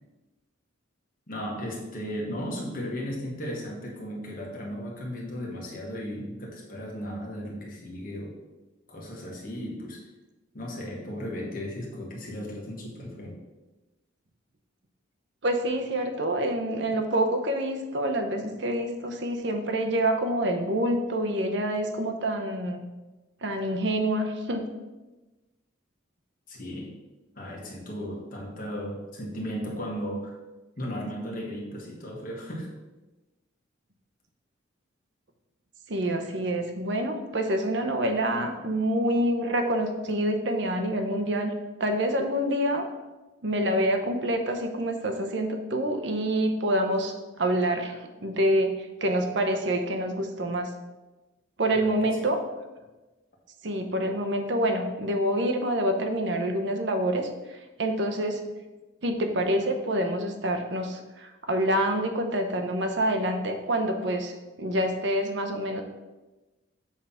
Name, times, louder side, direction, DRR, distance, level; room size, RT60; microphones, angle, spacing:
voice 1, 1.3-8.4 8.9-10.0 10.5-13.4 26.5-26.9 27.3-30.3 30.8-32.7 51.7-51.9 52.2-52.3, equal, 45° left, -2 dB, 1.6 m, -35 dB
voice 2, 15.4-22.8 23.4-24.7 35.9-41.5 41.8-42.9 43.4-50.7 51.6-52.4 53.6-58.4 59.0-65.8, right 1 dB, 60° right, 5 dB, 0.8 m, -27 dB
7.4 x 3.5 x 5.6 m, 1.1 s
head